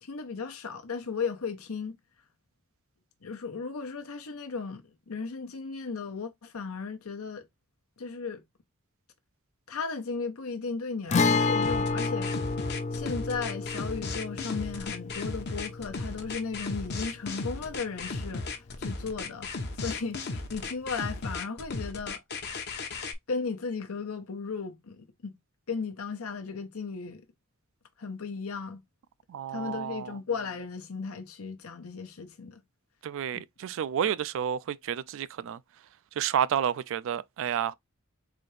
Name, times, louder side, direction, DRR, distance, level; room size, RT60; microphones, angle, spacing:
voice 1, 0.0-2.0 3.2-7.5 8.0-8.4 9.7-12.3 12.9-19.6 19.8-22.2 23.3-25.4 25.7-27.2 28.0-28.8 29.5-32.6 33.3-33.4, left 5 dB, 85° left, 0.8 m, -35 dB
Guitar, 11.1-18.7 19.0-19.1 21.1-21.2, left 4 dB, 35° left, 0.4 m, -31 dB
sound 1, 11.6-23.1, left 3 dB, 50° left, 0.8 m, -35 dB
voice 2, 29.3-30.2 33.0-35.6 36.2-37.7, right 9 dB, 65° right, 0.3 m, -30 dB
4.0 x 2.8 x 3.1 m
head